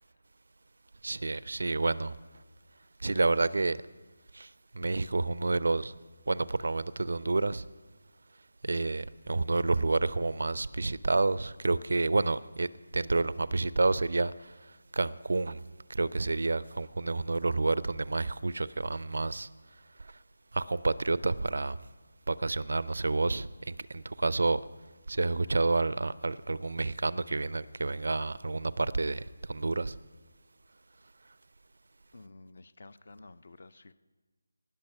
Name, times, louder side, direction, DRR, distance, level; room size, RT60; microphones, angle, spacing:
voice 1, 1.0-2.1 3.0-3.8 4.3-5.9 6.3-7.7 8.6-12.7 12.9-15.6 15.9-19.5 20.0-20.1 20.5-21.8 22.3-24.6 25.1-30.0, right 3 dB, 55° right, 0.4 m, -29 dB
voice 2, 32.1-33.9, left 2 dB, 50° left, 0.5 m, -51 dB
19.0 x 6.4 x 5.8 m
figure-of-eight pair, 155°, 0 cm